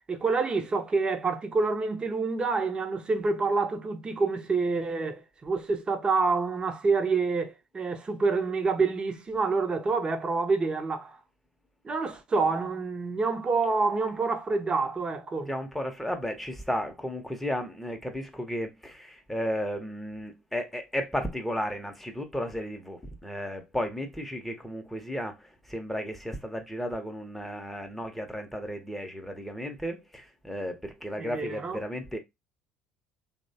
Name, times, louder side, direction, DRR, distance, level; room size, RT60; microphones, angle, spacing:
voice 1, 0.1-11.2 11.8-15.5 31.2-31.8, right 4 dB, 30° right, 0.7 m, -27 dB
voice 2, 15.5-32.2, equal, 5° left, 0.8 m, -34 dB
2.9 x 2.1 x 2.7 m
hypercardioid pair, 75°, 3 cm